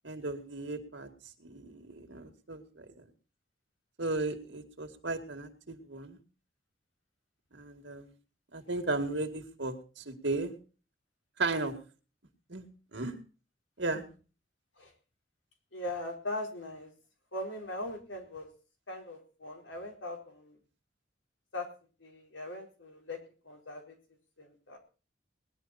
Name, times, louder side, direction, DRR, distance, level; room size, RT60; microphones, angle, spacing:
voice 1, 0.0-1.1 1.4-2.9 4.0-6.2 7.5-8.1 8.5-10.6 11.4-11.7 12.5-12.6 12.9-13.2 13.8-14.0, right 2 dB, 70° right, 5 dB, 2.2 m, -35 dB
voice 2, 15.7-16.9 17.3-18.5 18.9-20.6 21.5-21.7 22.0-23.2 23.4-24.0 24.4-24.8, left 1 dB, 90° left, 2 dB, 4.4 m, -40 dB
19.5 x 11.5 x 4.2 m, 0.36 s
head